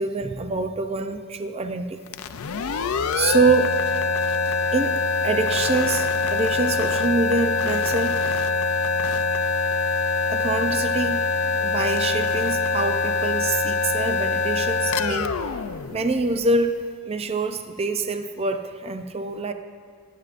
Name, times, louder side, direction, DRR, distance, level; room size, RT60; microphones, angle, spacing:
voice 1, 0.0-2.0 2.7-3.8 4.7-8.5 10.3-11.3 11.6-15.5 15.9-16.8 17.0-19.5, right 3 dB, 30° right, 7 dB, 0.5 m, -25 dB
sound 1, 2.1-16.7, left 4 dB, 75° left, 0.5 m, -24 dB
20.0 x 9.1 x 2.5 m, 2.2 s
head